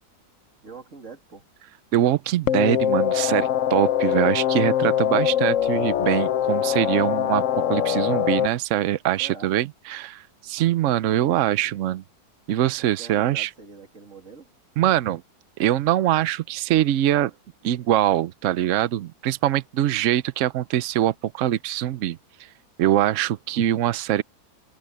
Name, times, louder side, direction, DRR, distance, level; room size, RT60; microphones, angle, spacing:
voice 1, 0.6-1.4 9.2-9.5 12.8-14.5, right 4 dB, 40° right, 3.1 m, -43 dB
voice 2, 1.9-7.4 7.7-12.0 12.5-13.5 14.8-15.2 15.6-17.3 17.6-22.5 22.8-24.2, right 12 dB, 75° right, 0.7 m, -23 dB
sound 1, 2.5-8.5, left 10 dB, 65° left, 0.7 m, -23 dB
omnidirectional pair, 2.0 m